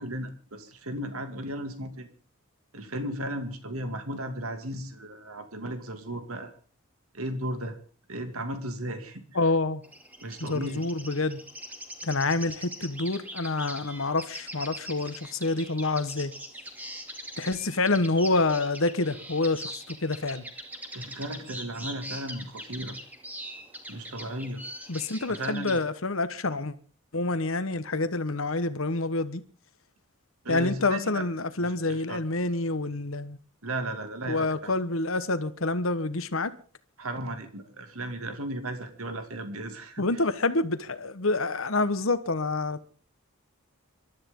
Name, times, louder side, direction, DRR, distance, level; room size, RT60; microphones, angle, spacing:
voice 1, 0.0-2.1 2.7-6.5 7.1-7.8 8.1-9.2 10.2-10.8 20.9-23.0 23.9-24.6 25.3-25.8 30.4-31.2 31.6-32.2 33.6-34.7 37.0-40.1, right 1 dB, 80° right, 2.4 m, -35 dB
voice 2, 9.3-9.8 10.4-11.4 12.0-16.3 17.4-20.4 24.9-26.7 27.1-29.4 30.5-33.4 34.3-36.5 40.0-42.9, left 2 dB, 65° left, 1.3 m, -27 dB
sound 1, 9.8-25.8, equal, 10° right, 2.5 m, -42 dB
27.0 x 13.0 x 3.8 m
head